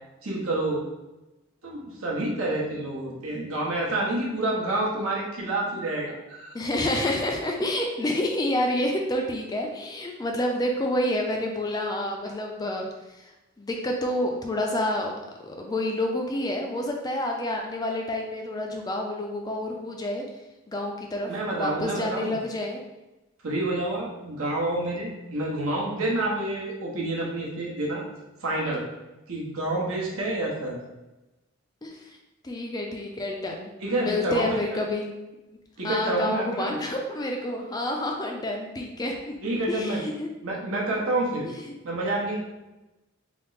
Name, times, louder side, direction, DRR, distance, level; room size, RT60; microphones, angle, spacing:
voice 1, 0.2-0.9 1.6-6.5 21.3-22.3 23.4-28.0 28.4-28.8 29.3-30.8 33.8-34.8 35.8-36.7 39.4-40.0 40.4-41.5 41.8-42.4, right 2 dB, 85° right, -4 dB, 0.9 m, -28 dB
voice 2, 6.5-12.9 13.2-13.3 13.6-15.1 15.4-20.2 20.7-22.8 31.8-32.2 32.4-35.1 35.8-39.3 39.7-40.3 41.4-41.6, left 1 dB, 20° left, 1 dB, 0.3 m, -28 dB
3.4 x 2.0 x 3.9 m, 1.0 s
head